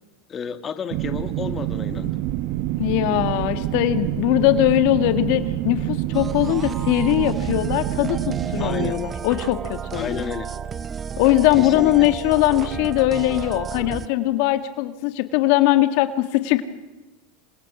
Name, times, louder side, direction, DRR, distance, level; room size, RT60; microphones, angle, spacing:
voice 1, 0.3-2.2 8.6-9.0 9.9-10.5 11.6-12.1, left 7 dB, 30° left, 8 dB, 1.7 m, -31 dB
sound 1, 0.9-8.9, right 15 dB, 60° right, 0.9 m, -27 dB
voice 2, 2.8-10.2 11.2-16.6, left 14 dB, 65° left, 9 dB, 1.7 m, -20 dB
sound 2, 6.1-14.1, right 7 dB, 25° right, 0.7 m, -32 dB
27.5 x 24.0 x 6.1 m, 1.1 s
supercardioid pair, 115°, 0 cm